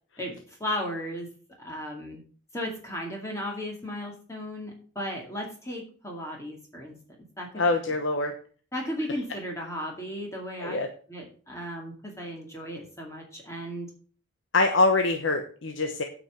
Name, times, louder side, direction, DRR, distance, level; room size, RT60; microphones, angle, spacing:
voice 1, 0.2-1.3 1.6-2.2 2.5-6.9 7.4-7.9 8.7-10.8 11.1-13.9, equal, 15° left, -1 dB, 2.2 m, -35 dB
voice 2, 7.5-8.3 10.6-10.9 14.5-16.0, left 3 dB, 75° left, 5 dB, 1.0 m, -24 dB
9.0 x 5.3 x 7.2 m, 0.42 s
head